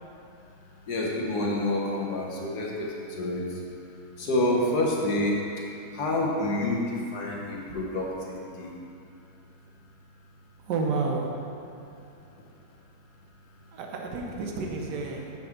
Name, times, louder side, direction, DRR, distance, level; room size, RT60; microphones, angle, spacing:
voice 1, 0.7-8.7, left 1 dB, 65° left, -2 dB, 1.7 m, -28 dB
voice 2, 10.7-11.3 13.7-15.3, right 4 dB, 80° right, 0 dB, 1.5 m, -30 dB
8.7 x 3.6 x 6.4 m, 2.6 s
omnidirectional pair, 1.9 m